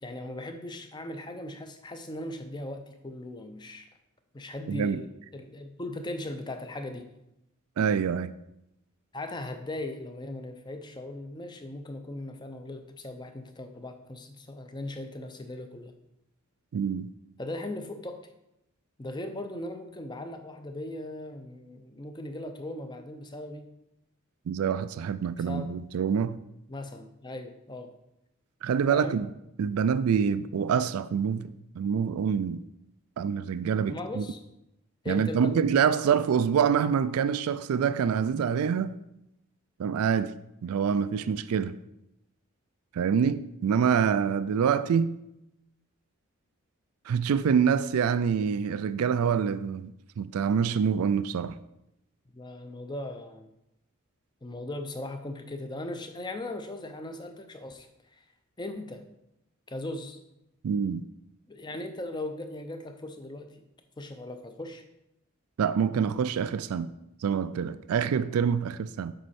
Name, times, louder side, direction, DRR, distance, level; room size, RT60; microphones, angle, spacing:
voice 1, 0.0-3.9 4.3-5.1 5.3-7.1 9.1-15.9 17.4-18.2 19.0-23.7 25.5-25.7 26.7-27.9 28.9-29.2 33.9-34.4 35.0-35.8 52.3-53.5 54.4-58.2 58.6-59.0 59.7-60.2 61.5-63.6 64.0-64.8, left 1 dB, 20° left, 0.6 m, -38 dB
voice 2, 4.7-5.0 7.8-8.3 16.7-17.1 24.5-26.4 28.6-29.3 29.6-32.6 33.2-34.2 35.1-39.0 39.8-40.3 40.6-41.8 42.9-45.2 47.1-49.9 50.2-51.5 60.6-61.0 65.6-66.9 67.2-69.1, right 7 dB, 80° right, 0.3 m, -26 dB
7.7 x 5.4 x 4.2 m
head